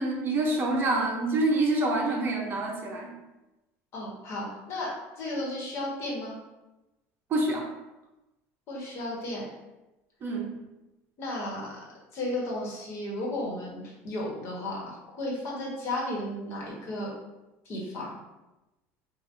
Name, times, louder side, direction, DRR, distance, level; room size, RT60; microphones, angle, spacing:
voice 1, 0.0-3.1 7.3-7.7 10.2-10.5, right 2 dB, 40° right, 1 dB, 0.7 m, -26 dB
voice 2, 3.9-6.3 8.7-9.4 11.2-11.8 12.1-17.1 17.6-18.2, left 1 dB, 50° left, -3 dB, 1.3 m, -34 dB
5.2 x 2.5 x 2.5 m, 1.0 s
cardioid pair, 125°, 6 cm